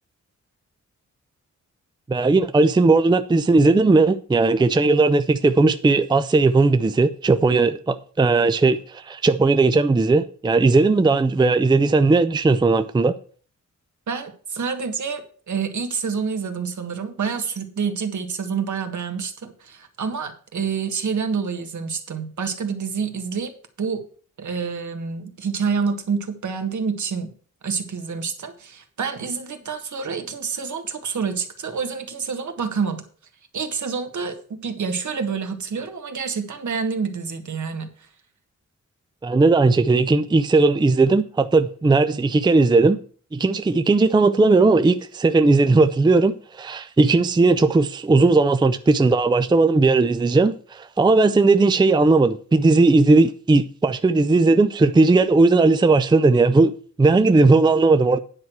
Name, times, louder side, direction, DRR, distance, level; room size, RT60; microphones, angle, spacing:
voice 1, 2.1-13.1 39.2-43.0 43.3-56.7 57.0-58.2, right 3 dB, 15° right, 0.4 m, -17 dB
voice 2, 14.1-23.5 23.8-24.0 24.4-27.3 27.6-33.0 33.5-38.1, right 5 dB, 70° right, 1.6 m, -28 dB
9.8 x 4.7 x 7.8 m
wide cardioid pair, 135°, 30 cm